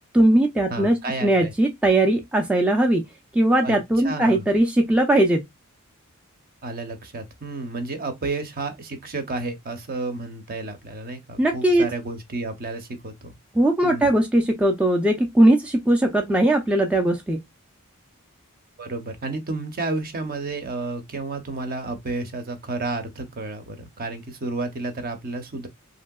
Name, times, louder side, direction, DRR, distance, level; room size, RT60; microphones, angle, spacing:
voice 1, 0.1-3.0 3.3-5.4 11.4-11.8 13.5-17.4, right 1 dB, 5° right, 0.4 m, -19 dB
voice 2, 0.7-1.5 3.6-3.8 4.0-4.5 6.6-13.3 13.8-14.1 18.8-25.7, right 3 dB, 40° right, 0.7 m, -31 dB
3.1 x 2.7 x 2.2 m
head